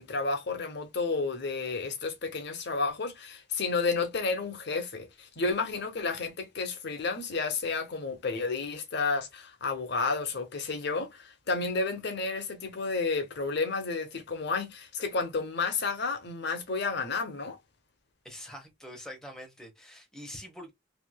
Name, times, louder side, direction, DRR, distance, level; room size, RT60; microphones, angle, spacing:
voice 1, 0.0-17.6, left 4 dB, 60° left, 0.8 m, -31 dB
voice 2, 18.2-20.7, left 1 dB, 5° left, 1.0 m, -45 dB
3.2 x 2.7 x 2.2 m
head